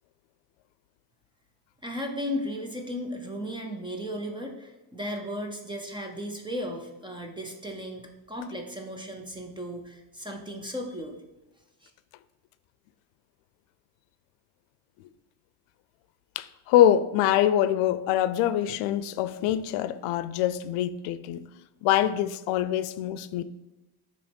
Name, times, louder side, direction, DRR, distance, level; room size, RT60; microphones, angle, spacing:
voice 1, 1.8-11.2 11.8-11.9, equal, 10° right, 0.5 m, -35 dB
voice 2, 16.4-21.5 21.8-23.4, left 11 dB, 85° left, 0.6 m, -24 dB
7.0 x 3.1 x 5.2 m
cardioid pair, 150°, 49 cm